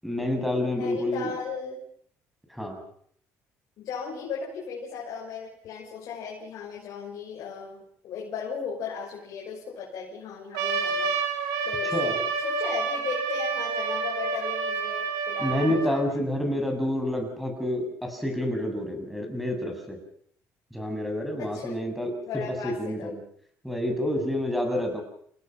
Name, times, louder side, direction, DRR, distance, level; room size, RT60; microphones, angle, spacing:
voice 1, 0.0-1.3 2.5-2.8 11.9-12.2 15.4-20.0 20.7-22.1 22.6-23.1 23.6-25.0, left 1 dB, ahead, 3 dB, 7.7 m, -28 dB
voice 2, 0.7-1.8 3.8-11.4 11.6-16.1 21.4-21.9 22.2-23.1, left 6 dB, 65° left, -3 dB, 6.7 m, -37 dB
Trumpet, 10.5-15.9, right 4 dB, 90° right, 4.9 m, -29 dB
30.0 x 17.5 x 6.0 m, 0.63 s
cardioid pair, 95°, 6 cm